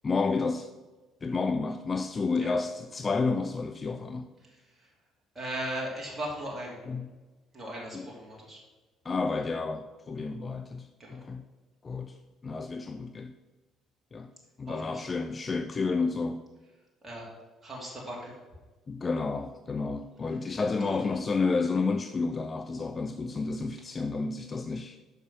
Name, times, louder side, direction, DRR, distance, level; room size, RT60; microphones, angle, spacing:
voice 1, 0.0-0.7 1.2-4.3 6.9-7.1 7.9-8.0 9.0-11.4 11.8-12.2 12.4-13.3 14.1-14.3 14.6-16.4 18.9-25.0, left 4 dB, 35° left, 8 dB, 0.5 m, -30 dB
voice 2, 4.4-4.9 5.3-6.8 7.5-8.6 11.0-11.3 14.7-15.0 17.0-17.3 17.6-18.4 20.8-21.0, right 1 dB, 25° right, -4 dB, 2.8 m, -38 dB
6.9 x 5.8 x 5.9 m, 1.2 s
figure-of-eight pair, 50°, 0 cm